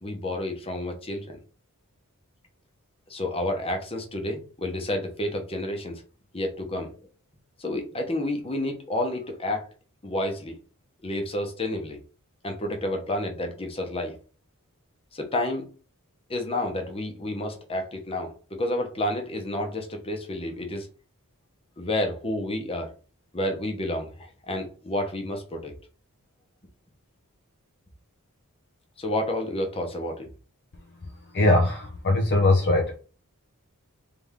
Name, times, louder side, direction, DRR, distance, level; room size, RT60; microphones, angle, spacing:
voice 1, 0.0-1.4 3.1-6.0 6.3-6.9 7.6-9.7 10.0-10.6 11.0-12.0 12.4-14.1 15.1-15.7 16.3-20.9 21.8-22.9 23.3-25.7 29.0-30.3, left 1 dB, 25° left, 1.0 m, -30 dB
voice 2, 31.3-33.0, left 2 dB, 50° left, 0.6 m, -21 dB
3.5 x 3.4 x 3.6 m
head